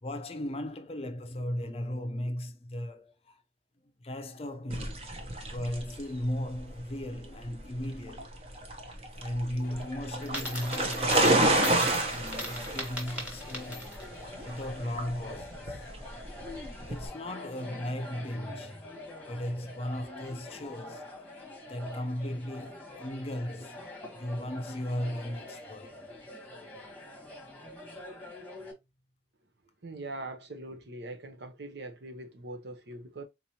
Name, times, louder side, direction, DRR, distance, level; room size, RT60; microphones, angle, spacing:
voice 1, 0.0-3.4 4.0-8.6 9.1-13.9 14.4-15.9 16.9-18.9 19.2-21.3 21.6-26.0, left 1 dB, 35° left, 0.5 m, -36 dB
sound 1, 4.7-17.1, right 1 dB, 35° right, 0.8 m, -30 dB
sound 2, 9.6-28.7, left 2 dB, 10° left, 1.1 m, -46 dB
Coin (dropping), 10.2-14.1, equal, 5° right, 1.5 m, -38 dB
voice 2, 29.8-33.2, right 2 dB, 75° right, 0.8 m, -42 dB
4.0 x 3.0 x 2.7 m
head